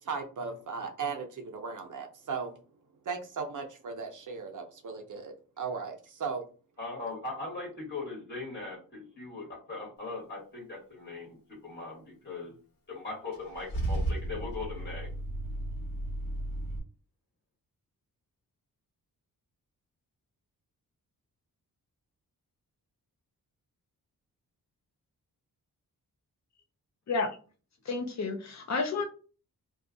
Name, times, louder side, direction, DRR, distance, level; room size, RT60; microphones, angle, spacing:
voice 1, 0.0-2.5 3.0-6.4, right 5 dB, 55° right, 4 dB, 0.7 m, -37 dB
voice 2, 6.8-12.5 12.9-15.1, left 3 dB, 30° left, -2 dB, 1.6 m, -40 dB
Car / Engine starting / Idling, 13.3-16.8, right 1 dB, 65° left, 1.4 m, -34 dB
voice 3, 27.9-29.0, left 4 dB, 50° left, 5 dB, 0.8 m, -30 dB
2.6 x 2.4 x 3.8 m, 0.37 s
wide cardioid pair, 100°, 37 cm